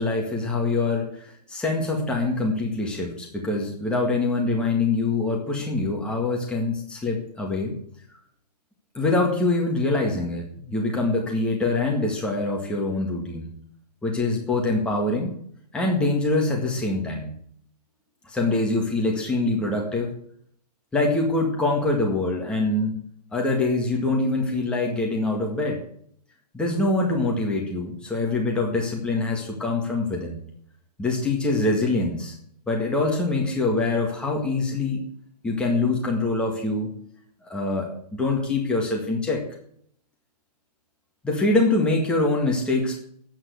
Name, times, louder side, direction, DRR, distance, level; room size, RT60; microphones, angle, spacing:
voice 1, 0.0-7.7 8.9-13.5 14.0-15.3 15.7-17.3 18.2-20.1 20.9-23.0 23.3-25.8 26.5-30.4 31.0-32.4 32.7-35.0 35.4-36.9 37.4-39.4 41.2-43.0, left 2 dB, 5° left, -1 dB, 1.9 m, -24 dB
9.5 x 9.1 x 7.9 m, 0.65 s
hypercardioid pair, 160°, 21 cm